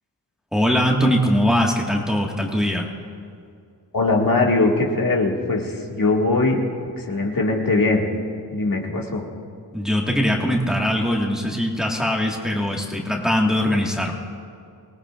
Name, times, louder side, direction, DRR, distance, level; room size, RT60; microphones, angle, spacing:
voice 1, 0.5-2.9 9.7-14.2, equal, ahead, -1 dB, 1.8 m, -21 dB
voice 2, 3.9-6.6 7.0-8.1 8.5-9.2, left 3 dB, 60° left, -1 dB, 2.1 m, -21 dB
24.5 x 18.0 x 2.5 m, 2.3 s
wide cardioid pair, 90°, 39 cm